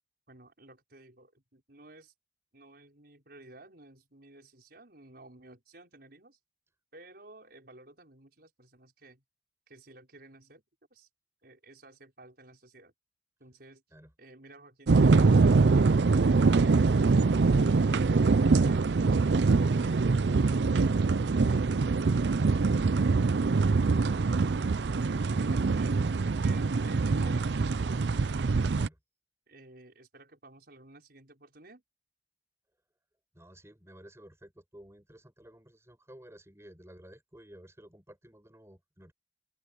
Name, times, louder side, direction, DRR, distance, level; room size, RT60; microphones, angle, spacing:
voice 1, 0.3-2.1 2.5-6.4 6.9-9.2 9.7-10.6 10.9-11.1 11.4-12.9 13.4-13.8 14.2-16.0 16.4-20.8 21.4-22.1 24.2-27.8 28.2-28.6 29.5-31.8, right 2 dB, 60° right, 5.6 m, -54 dB
sound 1, 14.9-28.9, right 4 dB, 75° right, 0.5 m, -24 dB
voice 2, 33.3-39.1, right 1 dB, 15° right, 6.7 m, -53 dB
open air
head